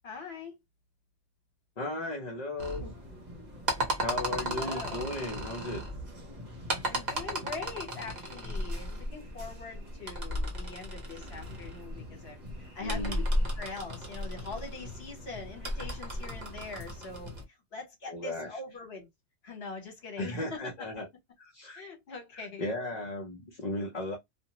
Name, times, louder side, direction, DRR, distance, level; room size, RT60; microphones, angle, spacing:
voice 1, 0.0-0.6 4.4-5.1 6.8-13.2 13.6-19.1 19.4-21.0 21.7-22.7, left 4 dB, 60° left, 1.3 m, -43 dB
voice 2, 1.8-2.9 4.0-5.8 12.8-13.2 18.1-18.5 20.2-21.1 21.4-21.8 22.3-24.2, left 2 dB, 40° left, 0.7 m, -36 dB
sound 1, 2.6-17.4, equal, 40° right, 0.9 m, -35 dB
2.5 x 2.1 x 2.8 m
omnidirectional pair, 1.2 m